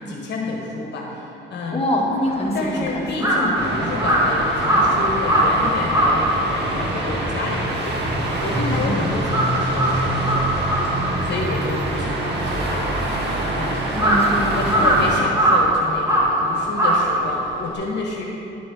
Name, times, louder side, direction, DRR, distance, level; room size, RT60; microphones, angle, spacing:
voice 1, 0.0-1.8 2.5-10.7 11.2-12.9 13.3-13.8 14.5-18.3, left 3 dB, 60° left, -1 dB, 1.3 m, -29 dB
voice 2, 1.7-3.8 8.5-9.1 13.9-14.9, left 1 dB, 30° left, -2 dB, 1.7 m, -25 dB
Crow, 2.3-8.8 9.1-17.7, right 1 dB, 15° right, 2.3 m, -21 dB
sound 1, 3.6-15.2, right 1 dB, 60° right, 1.8 m, -25 dB
11.0 x 6.1 x 6.0 m, 3.0 s
cardioid pair, 90°, 20 cm